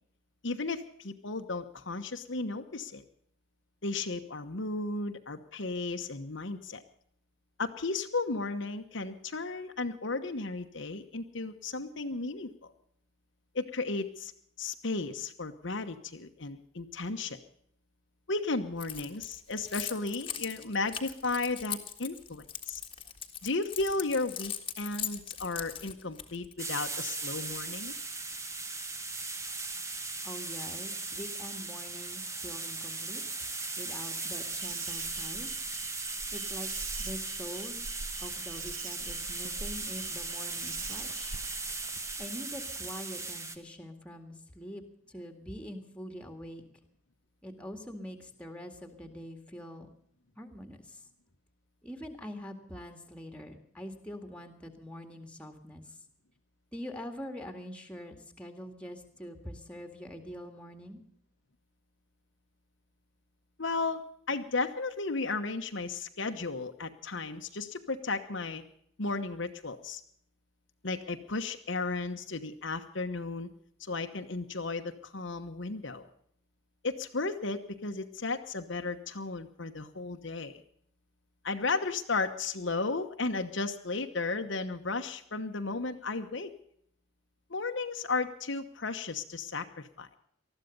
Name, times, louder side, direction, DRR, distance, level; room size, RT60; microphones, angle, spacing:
voice 1, 0.4-3.0 3.8-6.8 7.6-12.7 13.5-14.3 14.6-17.4 18.3-22.8 23.4-27.9 63.6-64.0 64.3-68.6 69.0-70.0 70.8-73.5 73.8-76.1 76.8-80.6 81.4-86.5 87.5-90.2, left 3 dB, 60° left, 6 dB, 1.1 m, -34 dB
Keys jangling, 18.8-26.5, left 9 dB, 25° left, 1.5 m, -39 dB
sound 1, 26.6-43.6, right 3 dB, 15° right, 1.1 m, -37 dB
voice 2, 30.2-33.2 33.8-35.5 36.3-36.7 37.0-37.9 38.2-41.4 42.2-44.8 45.1-46.6 47.4-49.9 50.4-51.0 51.8-56.0 56.7-61.0, equal, 5° left, 6 dB, 2.0 m, -44 dB
Insect, 34.6-43.0, right 4 dB, 70° right, 0.9 m, -46 dB
20.0 x 14.0 x 5.3 m, 0.66 s
head